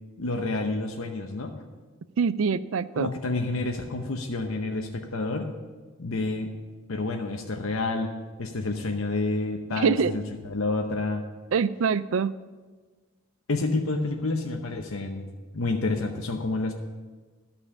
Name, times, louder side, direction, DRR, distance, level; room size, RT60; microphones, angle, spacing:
voice 1, 0.2-1.5 3.0-5.4 6.0-6.5 6.9-8.1 8.4-11.2 13.5-16.7, left 2 dB, 75° left, 3 dB, 0.8 m, -29 dB
voice 2, 2.2-3.1 9.8-10.1 11.5-12.3, right 6 dB, 65° right, 16 dB, 0.4 m, -24 dB
12.0 x 5.7 x 7.0 m, 1.3 s
head